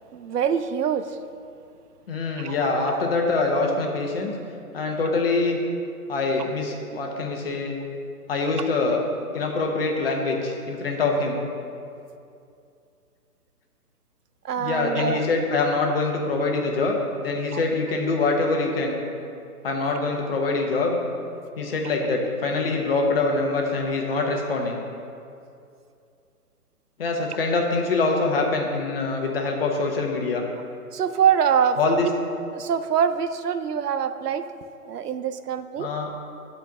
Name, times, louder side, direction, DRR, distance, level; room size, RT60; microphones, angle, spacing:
voice 1, 0.1-1.2 2.4-3.0 14.4-15.2 17.5-17.6 30.9-32.1 32.5-34.4 34.8-36.1, right 8 dB, 80° right, 11 dB, 0.7 m, -24 dB
voice 2, 2.1-4.3 4.7-5.6 6.1-7.8 8.3-9.0 9.3-11.4 14.6-18.9 19.6-21.0 21.6-24.7 27.0-30.4 31.8-32.1 35.8-36.1, left 3 dB, 40° left, 1 dB, 1.0 m, -24 dB
8.4 x 4.5 x 6.1 m, 2.5 s
hypercardioid pair, 160°, 46 cm